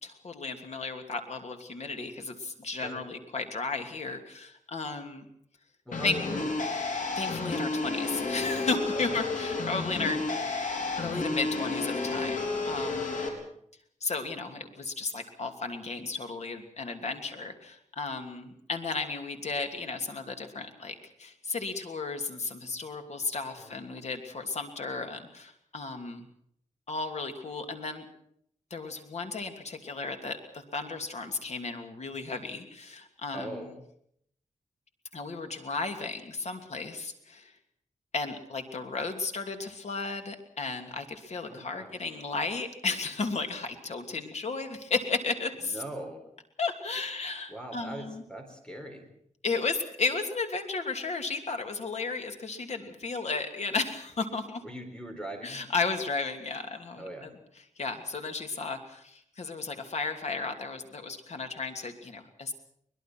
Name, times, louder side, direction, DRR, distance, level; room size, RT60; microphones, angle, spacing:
voice 1, 0.0-5.3 6.0-6.2 7.2-10.2 10.5-10.7 11.0-13.2 14.0-26.3 26.9-28.0 28.7-33.7 35.1-37.5 38.1-45.8 46.6-48.2 49.4-54.6 55.4-57.3 57.8-62.5, left 4 dB, 60° left, 5 dB, 2.9 m, -34 dB
voice 2, 2.7-3.0 5.9-6.5 8.9-9.2 13.1-13.5 23.6-23.7 33.3-33.7 41.5-42.0 45.6-46.2 47.5-49.1 54.6-55.7 57.0-57.3, right 1 dB, 5° left, 5 dB, 4.0 m, -41 dB
sound 1, 5.9-13.3, left 3 dB, 80° left, 4.7 m, -31 dB
23.0 x 21.0 x 6.2 m, 0.68 s
wide cardioid pair, 130°, 13 cm